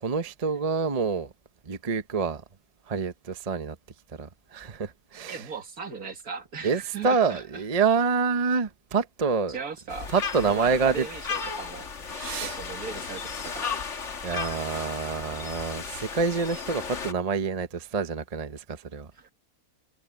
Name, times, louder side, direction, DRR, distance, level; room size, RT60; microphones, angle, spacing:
voice 1, 0.0-1.3 1.6-2.4 2.9-3.8 4.2-5.4 6.6-9.6 10.1-11.0 12.1-12.6 14.2-19.1, right 5 dB, 30° right, 0.9 m, -27 dB
voice 2, 5.1-7.6 9.5-11.9 12.4-13.8 19.1-19.3, right 5 dB, 70° right, 2.5 m, -38 dB
sound 1, 9.9-17.1, left 6 dB, 50° left, 1.8 m, -35 dB
omnidirectional pair, 1.6 m